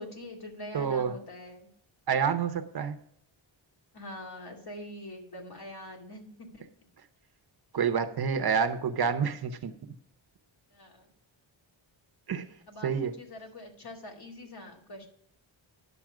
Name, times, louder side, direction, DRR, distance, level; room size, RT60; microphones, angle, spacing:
voice 1, 0.0-1.7 3.9-6.6 10.7-11.1 12.7-15.1, left 1 dB, 50° left, 1 dB, 2.4 m, -44 dB
voice 2, 0.7-1.2 2.1-3.0 7.7-9.9 12.3-12.5 12.8-13.1, right 6 dB, 50° right, 10 dB, 0.8 m, -28 dB
10.5 x 6.9 x 4.8 m, 0.68 s
wide cardioid pair, 170°, 48 cm